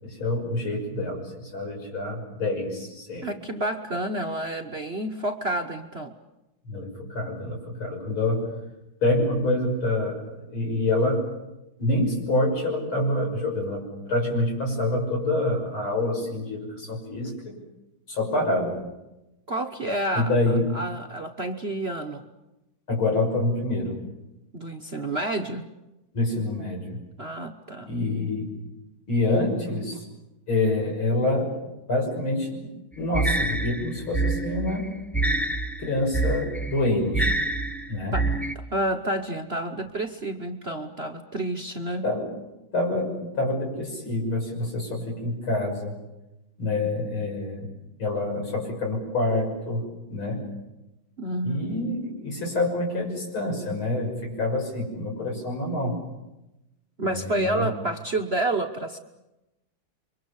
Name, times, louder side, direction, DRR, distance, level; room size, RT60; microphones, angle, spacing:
voice 1, 0.0-3.3 6.7-8.5 9.0-11.2 11.8-17.6 18.1-18.7 20.2-20.6 22.9-24.0 26.1-27.0 27.9-28.5 29.1-30.0 30.5-31.5 31.9-32.7 33.0-34.9 35.8-37.3 37.9-38.2 42.0-42.3 42.7-46.0 46.6-47.7 48.0-50.4 51.4-56.0 57.0-57.7, left 2 dB, 75° left, 1 dB, 7.0 m, -26 dB
voice 2, 3.2-6.1 19.5-22.2 24.5-25.7 27.2-27.9 38.1-38.3 38.5-42.0 51.2-51.8 57.0-59.0, right 1 dB, 35° right, 4 dB, 1.1 m, -29 dB
sound 1, 33.1-38.5, right 2 dB, ahead, 0.5 m, -26 dB
29.5 x 24.0 x 7.1 m, 0.96 s
omnidirectional pair, 2.3 m